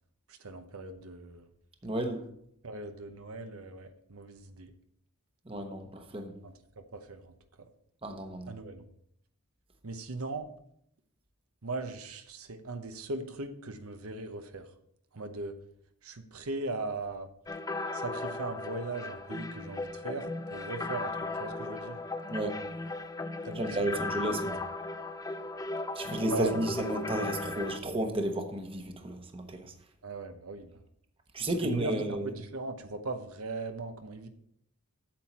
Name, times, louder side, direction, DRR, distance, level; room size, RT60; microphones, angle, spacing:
voice 1, 0.3-1.5 2.6-4.7 6.4-7.3 8.5-8.9 9.8-10.5 11.6-14.7 15.1-15.6 16.0-17.3 17.9-22.0 23.4-24.2 26.3-26.8 30.0-30.8 31.6-34.3, right 3 dB, 75° right, 0.9 m, -39 dB
voice 2, 1.8-2.2 5.5-6.3 8.0-8.5 22.3-22.6 23.6-24.6 25.9-29.7 31.3-32.3, right 1 dB, 25° right, 1.0 m, -32 dB
sound 1, 17.5-27.8, left 2 dB, 15° left, 0.5 m, -37 dB
8.7 x 7.6 x 4.3 m
head